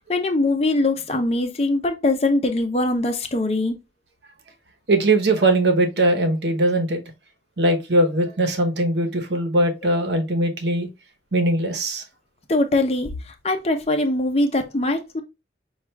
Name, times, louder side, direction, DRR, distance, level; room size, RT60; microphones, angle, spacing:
voice 1, 0.1-3.8 12.5-15.2, left 2 dB, 35° left, 0.6 m, -22 dB
voice 2, 4.9-7.0 7.6-10.9 11.3-12.0, right 1 dB, 80° right, 0.9 m, -20 dB
5.8 x 2.4 x 3.2 m
head